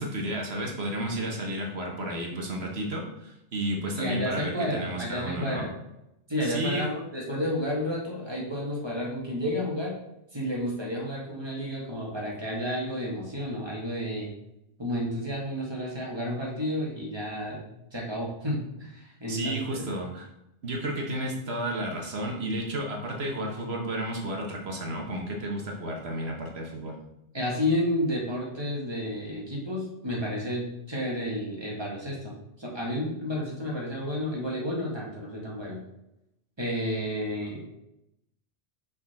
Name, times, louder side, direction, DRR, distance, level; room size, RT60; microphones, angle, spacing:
voice 1, 0.0-5.7 6.4-6.8 19.3-20.3 20.6-26.9, right 1 dB, 65° right, 1 dB, 1.3 m, -32 dB
voice 2, 3.9-5.7 6.3-9.9 10.3-14.3 14.8-19.8 27.3-35.8 36.6-37.6, equal, 25° right, -4 dB, 1.7 m, -31 dB
5.9 x 4.2 x 4.3 m, 0.86 s
omnidirectional pair, 1.2 m